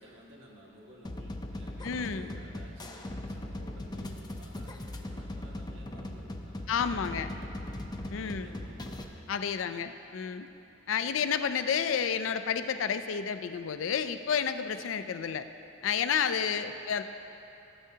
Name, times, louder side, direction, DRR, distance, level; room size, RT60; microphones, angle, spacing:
voice 1, 0.0-7.7 8.1-9.1 9.5-9.9 11.0-11.3 11.6-11.7 16.6-16.8, equal, 70° right, -3 dB, 1.6 m, -54 dB
sound 1, 1.0-9.0, left 1 dB, 20° left, 0.5 m, -39 dB
voice 2, 1.8-2.3 6.7-7.3 8.1-8.5 9.3-10.5 10.9-15.5 15.8-17.0, left 7 dB, 80° left, 10 dB, 0.4 m, -30 dB
15.5 x 8.6 x 2.8 m, 2.8 s
head